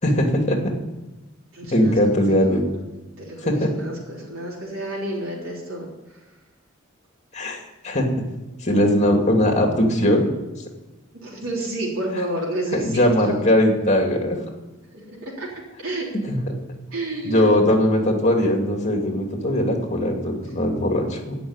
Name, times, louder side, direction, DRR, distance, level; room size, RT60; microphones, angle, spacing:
voice 1, 0.0-0.6 1.7-2.6 3.4-3.7 7.3-7.6 7.8-8.2 8.6-10.2 12.7-14.4 16.3-16.4 17.2-21.4, left 1 dB, 35° left, 2 dB, 2.4 m, -20 dB
voice 2, 1.5-1.9 2.8-2.9 3.2-6.2 11.2-13.4 14.9-15.5 15.8-16.1 16.9-17.5, right 1 dB, 85° right, -4 dB, 3.6 m, -30 dB
15.5 x 6.0 x 9.7 m, 1.1 s
head